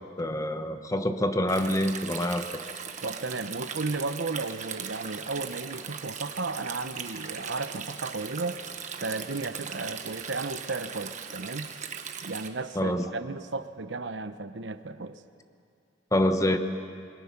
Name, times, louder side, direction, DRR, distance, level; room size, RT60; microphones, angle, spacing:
voice 1, 0.2-2.5 12.7-13.0 16.1-16.6, left 1 dB, 20° left, 8 dB, 1.0 m, -26 dB
Stream, 1.5-12.5, right 7 dB, 40° right, 1.2 m, -39 dB
voice 2, 3.0-8.6 9.0-11.7 12.2-15.2, right 3 dB, 85° right, 11 dB, 0.9 m, -34 dB
28.0 x 21.5 x 5.9 m, 2.3 s
head